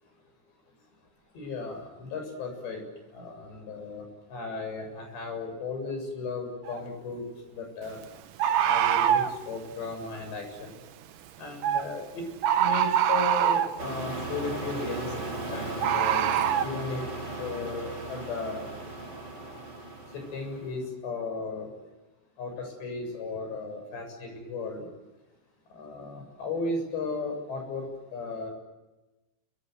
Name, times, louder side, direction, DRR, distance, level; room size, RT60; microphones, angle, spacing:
voice 1, 1.3-2.8 3.1-4.0 4.3-7.2 7.6-8.0 8.6-10.7 11.4-12.2 12.5-15.1 15.5-16.3 16.6-17.0 17.4-18.7 19.0-19.1 20.1-21.7 22.4-24.9 25.7-28.5, left 3 dB, 70° left, 4 dB, 9.6 m, -35 dB
Bird, 6.7-6.8 8.4-9.3 11.6-11.9 12.4-13.8 15.8-16.7, right 10 dB, 70° right, 2.1 m, -24 dB
sound 1, 13.8-20.8, right 2 dB, 20° right, 5.9 m, -37 dB
29.5 x 25.0 x 8.0 m, 1.1 s
omnidirectional pair, 5.3 m